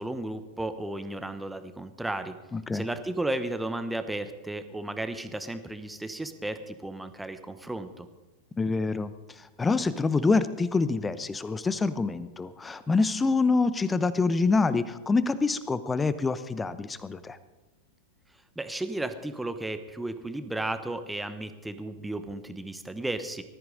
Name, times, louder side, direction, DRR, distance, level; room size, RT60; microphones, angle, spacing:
voice 1, 0.0-2.4 2.7-8.1 18.6-23.4, right 1 dB, 5° right, 10 dB, 1.0 m, -34 dB
voice 2, 2.5-2.9 8.6-17.4, left 4 dB, 15° left, 15 dB, 0.8 m, -26 dB
19.5 x 13.5 x 4.0 m, 1.2 s
figure-of-eight pair, 90°, 0 cm